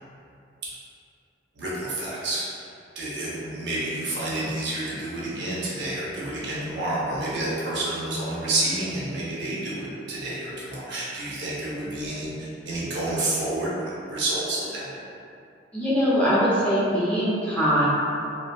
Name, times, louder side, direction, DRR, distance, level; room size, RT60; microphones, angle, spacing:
voice 1, 1.6-2.5 3.0-13.7 14.1-14.9, right 2 dB, 65° right, -7 dB, 0.7 m, -29 dB
voice 2, 15.7-17.9, equal, 10° left, -10 dB, 0.6 m, -22 dB
3.4 x 2.2 x 2.4 m, 2.6 s
head